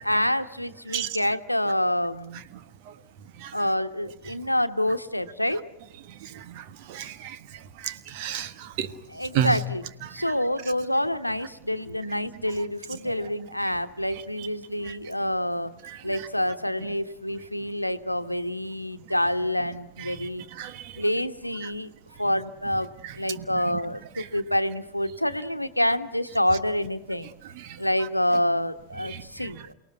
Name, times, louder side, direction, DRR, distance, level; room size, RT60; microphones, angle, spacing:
voice 1, 0.0-2.5 3.5-5.6 9.1-9.8 10.1-15.7 16.0-20.5 21.0-21.9 22.2-27.3 27.8-29.7, left 1 dB, 90° left, 1.1 m, -27 dB
voice 2, 6.9-7.4 7.8-8.9 9.3-9.6 20.6-20.9 29.1-29.2, right 10 dB, 45° right, 1.3 m, -29 dB
29.0 x 18.0 x 9.2 m
figure-of-eight pair, 90°, 0 cm